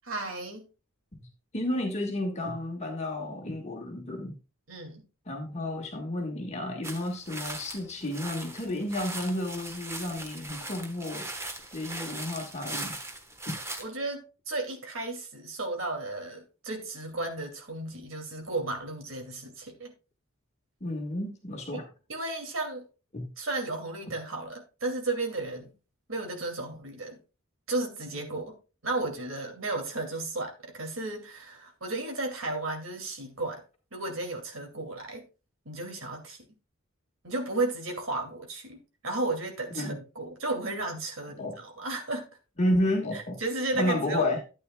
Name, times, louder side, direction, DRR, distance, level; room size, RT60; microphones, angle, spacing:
voice 1, 0.1-0.7 4.7-5.0 13.8-19.9 21.7-22.9 23.4-25.7 26.1-27.2 27.7-28.6 28.8-33.6 33.9-35.3 35.7-36.4 37.2-42.3 43.1-44.3, right 2 dB, 65° right, 2.5 m, -34 dB
voice 2, 1.5-4.4 5.3-11.3 11.7-12.9 13.4-13.6 20.8-21.9 23.1-23.3 39.7-40.0 41.4-41.5 42.6-43.4 43.7-44.4, left 1 dB, 30° left, 1.6 m, -31 dB
sound 1, 6.8-13.8, right 2 dB, 15° right, 1.2 m, -39 dB
12.5 x 8.7 x 2.3 m
head